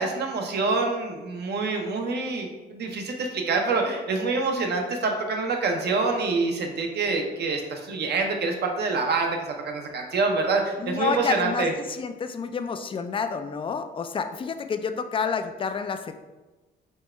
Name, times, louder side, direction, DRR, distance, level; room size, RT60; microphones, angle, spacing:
voice 1, 0.0-11.7, right 3 dB, 55° right, 3 dB, 0.8 m, -26 dB
voice 2, 10.8-16.1, left 6 dB, 25° left, 9 dB, 0.3 m, -29 dB
4.5 x 2.2 x 4.3 m, 1.2 s
cardioid pair, 90°, 20 cm